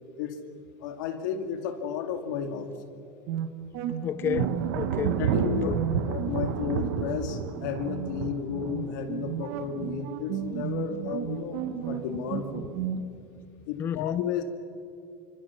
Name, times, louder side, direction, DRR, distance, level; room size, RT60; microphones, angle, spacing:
voice 1, 0.8-2.7 5.2-11.6 11.9-12.8 13.7-14.4, left 7 dB, 65° left, 2.5 m, -33 dB
sound 1, 3.3-13.0, right 9 dB, 50° right, 1.8 m, -34 dB
voice 2, 4.0-5.2 5.5-5.8 13.8-14.4, left 9 dB, 20° left, 0.6 m, -31 dB
Thunder, 4.3-10.8 11.1-11.7 12.1-13.0, right 7 dB, 90° right, 1.4 m, -32 dB
28.5 x 25.5 x 5.9 m
supercardioid pair, 180°, 11 cm